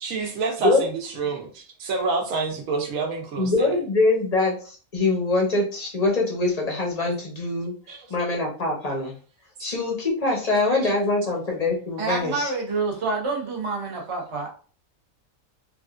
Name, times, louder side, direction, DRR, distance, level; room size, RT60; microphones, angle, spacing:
voice 1, 0.0-3.8 7.9-8.1 10.6-10.9, right 4 dB, 70° right, 2 dB, 1.1 m, -28 dB
voice 2, 3.4-7.7 8.1-9.1 9.6-12.5, left 2 dB, 45° left, -1 dB, 0.5 m, -23 dB
voice 3, 12.0-14.5, right 3 dB, 35° right, -1 dB, 0.5 m, -27 dB
3.4 x 2.4 x 2.4 m, 0.40 s
omnidirectional pair, 1.5 m